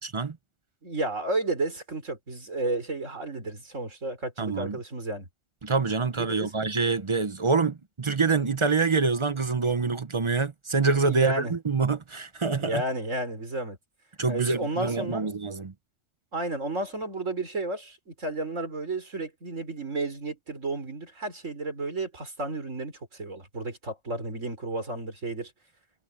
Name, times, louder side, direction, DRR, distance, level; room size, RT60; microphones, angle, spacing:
voice 1, 0.8-5.3 6.2-6.5 11.0-11.5 12.5-13.8 14.3-15.3 16.3-25.5, right 2 dB, 85° right, 4.9 m, -32 dB
voice 2, 4.4-4.8 5.6-12.8 14.2-15.7, right 4 dB, 30° right, 0.6 m, -26 dB
omnidirectional pair, 1.3 m